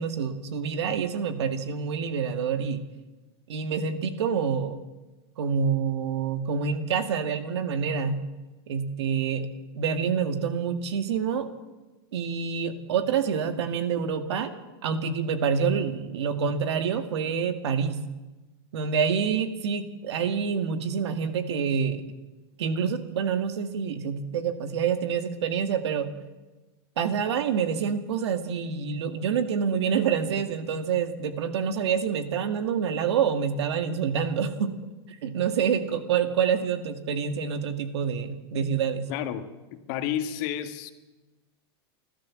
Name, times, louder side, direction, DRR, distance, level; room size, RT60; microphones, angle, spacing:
voice 1, 0.0-2.9 3.5-4.8 5.4-8.2 8.7-9.5 9.8-11.5 12.1-14.5 14.8-18.0 18.7-22.0 22.6-26.1 27.0-34.7 35.2-39.1, right 6 dB, 85° right, 8 dB, 2.1 m, -27 dB
voice 2, 39.1-40.9, left 10 dB, 50° left, 8 dB, 1.7 m, -31 dB
29.0 x 13.0 x 7.5 m, 1.1 s
supercardioid pair, 155°, 14 cm